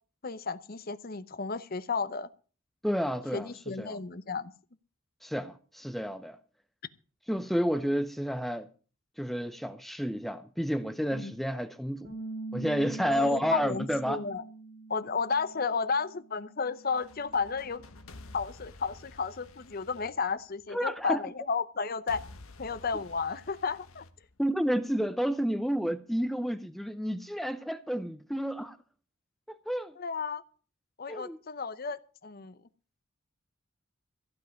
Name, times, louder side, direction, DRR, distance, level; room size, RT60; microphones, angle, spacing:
voice 1, 0.2-2.3 3.3-4.5 11.1-11.3 13.1-14.4 14.9-17.8 18.3-22.2 22.6-24.1 30.0-30.4 31.0-32.6, left 5 dB, 45° left, 0.7 m, -33 dB
voice 2, 2.8-3.5 3.8-4.0 5.2-6.4 7.3-8.7 9.2-12.1 12.5-14.2 20.7-21.2 24.4-28.8 29.5-30.0 31.1-31.4, equal, ahead, 0.6 m, -30 dB
Bass guitar, 12.0-18.3, right 3 dB, 65° right, 3.6 m, -44 dB
sound 1, 16.8-20.9 22.1-24.9, left 2 dB, 90° left, 1.3 m, -51 dB
15.5 x 5.4 x 9.5 m
head